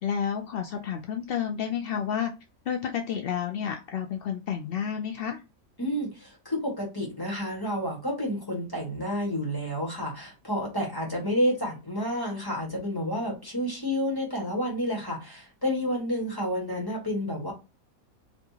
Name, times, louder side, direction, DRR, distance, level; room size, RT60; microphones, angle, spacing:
voice 1, 0.0-2.3 2.7-5.4, left 8 dB, 70° left, 4 dB, 0.5 m, -30 dB
voice 2, 5.8-17.5, equal, 15° left, -1 dB, 1.6 m, -30 dB
4.3 x 2.8 x 2.8 m, 0.27 s
omnidirectional pair, 1.5 m